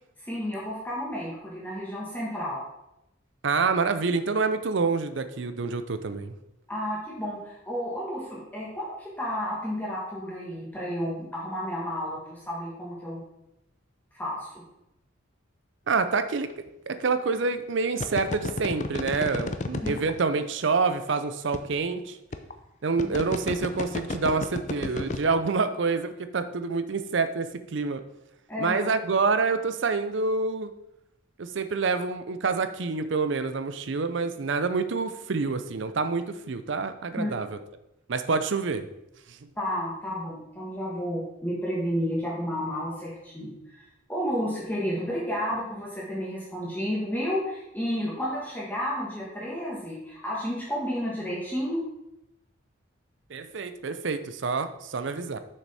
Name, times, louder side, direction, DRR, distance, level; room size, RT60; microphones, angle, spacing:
voice 1, 0.2-2.6 6.7-13.2 14.1-14.6 19.8-20.0 23.0-23.1 28.5-28.9 37.2-37.3 39.6-51.8, equal, 10° left, -6 dB, 1.4 m, -31 dB
voice 2, 3.4-6.3 15.9-16.5 16.9-22.2 22.8-28.0 28.6-30.7 31.4-37.6 38.1-38.9 39.3-39.5 53.3-55.4, right 4 dB, 60° right, 10 dB, 0.5 m, -27 dB
sound 1, 16.5-16.7 18.0-20.1 21.1-21.2 21.5-21.6 22.3-22.5 23.0-25.2, left 3 dB, 35° left, 0.5 m, -31 dB
6.6 x 6.1 x 4.2 m, 0.87 s
head